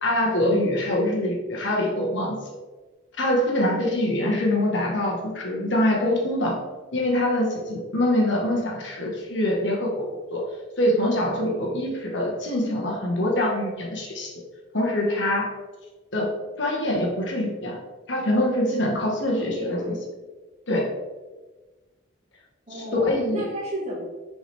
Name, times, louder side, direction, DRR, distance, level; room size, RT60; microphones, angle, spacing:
voice 1, 0.0-2.4 3.2-6.6 6.9-10.4 10.8-14.3 14.7-15.5 16.1-17.8 18.1-19.9 20.7-20.9 23.0-23.4, left 1 dB, 70° left, -1 dB, 1.6 m, -24 dB
voice 2, 16.8-17.1 19.2-19.9 22.7-23.1 23.3-24.0, right 1 dB, 30° right, -5 dB, 2.1 m, -34 dB
7.2 x 4.9 x 3.5 m, 1.2 s
head